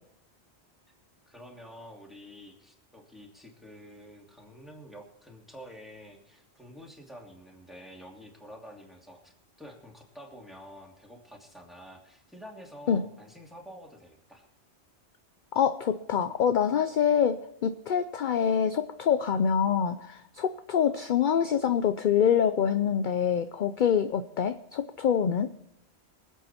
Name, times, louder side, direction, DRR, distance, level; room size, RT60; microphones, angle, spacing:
voice 1, 1.3-14.4, equal, ahead, 0 dB, 2.7 m, -48 dB
voice 2, 15.5-25.5, left 8 dB, 55° left, 10 dB, 0.7 m, -25 dB
24.5 x 8.3 x 4.3 m, 0.81 s
omnidirectional pair, 1.1 m